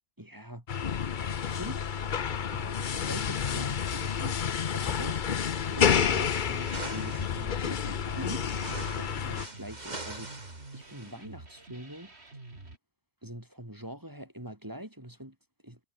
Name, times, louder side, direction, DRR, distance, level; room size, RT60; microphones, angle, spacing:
voice 1, 0.2-0.6 1.4-2.1 2.5-4.5 4.7-12.1 13.2-15.4 15.6-15.8, right 1 dB, 15° right, 3.1 m, -44 dB
sound 1, 0.7-9.5, left 7 dB, 45° left, 0.9 m, -30 dB
sound 2, 5.6-12.8, right 2 dB, 65° right, 4.1 m, -48 dB
sound 3, 6.5-7.4 8.1-11.2, right 2 dB, 35° right, 2.9 m, -43 dB
omnidirectional pair, 1.2 m